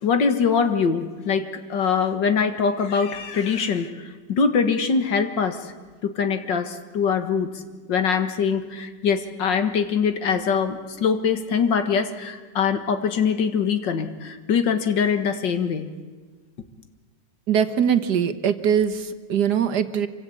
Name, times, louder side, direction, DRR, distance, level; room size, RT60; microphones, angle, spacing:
voice 1, 0.0-5.7 6.0-7.5 7.9-15.9, left 6 dB, 85° left, 8 dB, 2.3 m, -23 dB
voice 2, 17.5-20.1, right 8 dB, 70° right, 8 dB, 1.8 m, -22 dB
26.0 x 25.0 x 8.6 m, 1.4 s
omnidirectional pair, 1.9 m